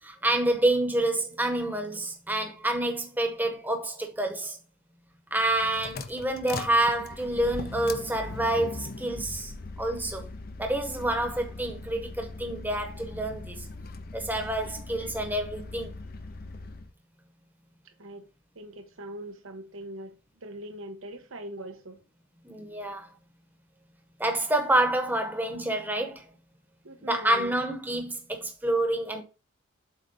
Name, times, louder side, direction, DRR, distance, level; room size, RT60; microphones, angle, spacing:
voice 1, 0.0-4.6 5.3-9.5 9.8-10.3 10.6-13.7 14.1-16.0 22.4-23.1 24.2-26.3 27.0-29.2, right 1 dB, 10° right, 1.0 m, -28 dB
sound 1, 5.4-16.9, left 3 dB, 45° left, 0.6 m, -40 dB
voice 2, 18.5-22.0 26.8-27.5, right 1 dB, 80° right, 1.2 m, -41 dB
7.8 x 3.1 x 5.3 m
head